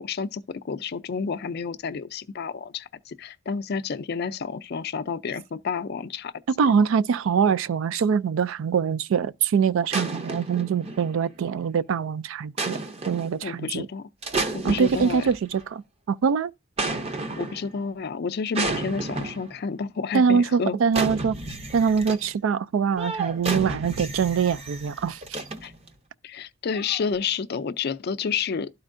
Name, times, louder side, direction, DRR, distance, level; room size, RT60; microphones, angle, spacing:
voice 1, 0.0-6.3 13.4-14.1 14.5-15.2 17.4-20.8 25.6-25.7 26.2-28.7, left 5 dB, 50° left, 0.4 m, -30 dB
voice 2, 6.6-12.8 13.1-13.9 14.6-15.8 16.1-16.5 20.1-21.4 21.7-25.2, right 6 dB, 70° right, 0.3 m, -23 dB
sound 1, 9.9-11.4 12.6-13.4 14.2-15.6 16.8-17.8 18.5-19.6 20.9-22.3 23.0-25.9 26.7-27.1, right 2 dB, 30° right, 0.6 m, -31 dB
12.5 x 4.4 x 2.5 m
head